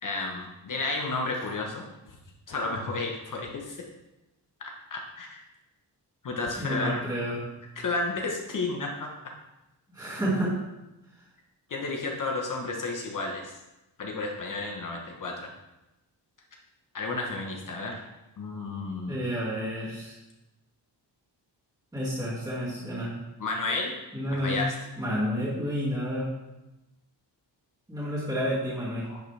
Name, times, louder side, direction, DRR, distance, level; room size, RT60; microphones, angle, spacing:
voice 1, 0.0-1.8 2.1-2.2 2.5-3.8 4.9-5.4 6.2-7.1 7.8-9.1 11.7-13.5 14.0-15.5 16.9-18.0 18.4-19.2 23.4-23.9 24.3-24.7 29.1-29.2, left 3 dB, 50° left, 1 dB, 1.0 m, -32 dB
voice 2, 6.6-7.4 9.9-10.5 19.1-20.1 21.9-23.1 24.1-24.6 25.0-26.3 27.9-29.0, equal, 10° right, -10 dB, 2.1 m, -30 dB
10.5 x 5.8 x 3.3 m, 0.98 s
wide cardioid pair, 175°, 42 cm